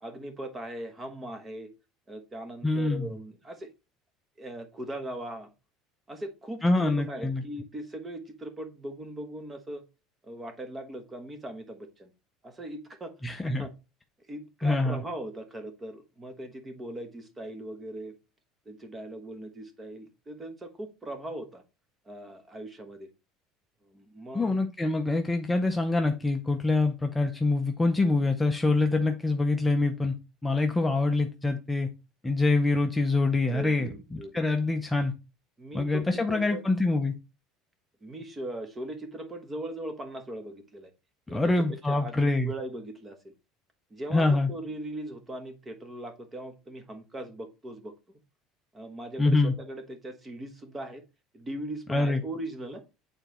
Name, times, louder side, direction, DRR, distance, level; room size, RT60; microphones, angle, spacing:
voice 1, 0.0-1.7 2.1-3.7 4.4-5.5 6.1-9.8 10.2-12.1 12.4-13.1 13.4-13.7 14.3-18.1 18.6-21.6 22.1-23.1 23.8-24.6 33.5-33.9 34.2-34.8 35.6-36.6 38.0-40.9 41.3-41.4 41.9-43.3 43.9-47.9 48.7-51.0 51.3-52.8, right 1 dB, 15° right, 7 dB, 1.1 m, -39 dB
voice 2, 2.6-3.1 6.6-7.4 13.2-13.7 14.6-15.0 24.3-30.1 30.4-31.9 32.2-35.1 35.7-37.1 41.3-42.5 44.1-44.5 49.2-49.5 51.9-52.2, left 2 dB, 10° left, 4 dB, 0.5 m, -25 dB
8.9 x 4.0 x 3.0 m, 0.29 s
cardioid pair, 150°, 0 cm